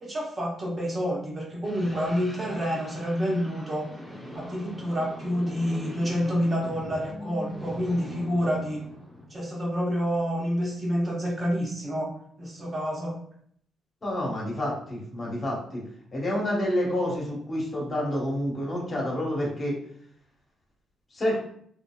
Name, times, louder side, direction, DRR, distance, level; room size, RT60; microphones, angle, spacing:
voice 1, 0.0-3.9 4.3-8.8 9.3-13.2, equal, 30° right, -3 dB, 0.8 m, -28 dB
sound 1, 1.6-11.0, equal, ahead, 0.6 m, -42 dB
voice 2, 14.0-15.8 16.1-19.7 21.1-21.4, left 1 dB, 35° left, -3 dB, 1.1 m, -28 dB
2.8 x 2.5 x 2.2 m, 0.64 s
cardioid pair, 90°, 0 cm